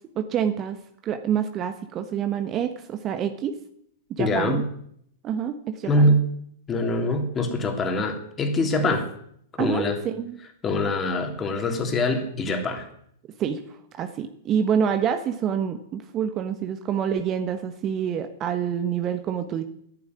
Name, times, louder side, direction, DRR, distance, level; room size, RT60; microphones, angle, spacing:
voice 1, 0.1-0.8 1.0-3.6 4.1-4.6 5.2-6.1 9.6-10.4 13.4-19.6, right 8 dB, 35° right, 8 dB, 1.3 m, -27 dB
voice 2, 4.2-4.6 5.8-6.2 6.7-9.1 9.6-10.0 10.6-12.9, left 1 dB, 25° left, 5 dB, 3.2 m, -23 dB
11.0 x 10.5 x 9.7 m, 0.70 s
hypercardioid pair, 105°, 0 cm